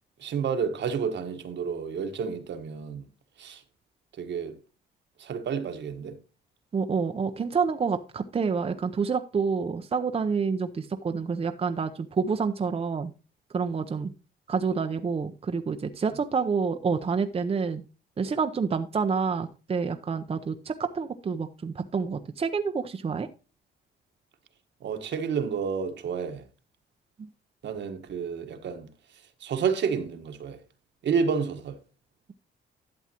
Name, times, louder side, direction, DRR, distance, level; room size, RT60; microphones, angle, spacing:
voice 1, 0.2-3.1 3.4-3.6 4.2-4.6 5.2-6.2 16.1-16.2 24.8-26.4 27.6-28.9 29.4-30.6 31.0-31.8, right 6 dB, 65° right, 1.4 m, -30 dB
voice 2, 6.7-13.1 13.5-14.1 14.5-17.8 18.2-23.3, right 5 dB, 30° right, 0.7 m, -28 dB
12.0 x 7.2 x 2.9 m
cardioid pair, 90°, 20 cm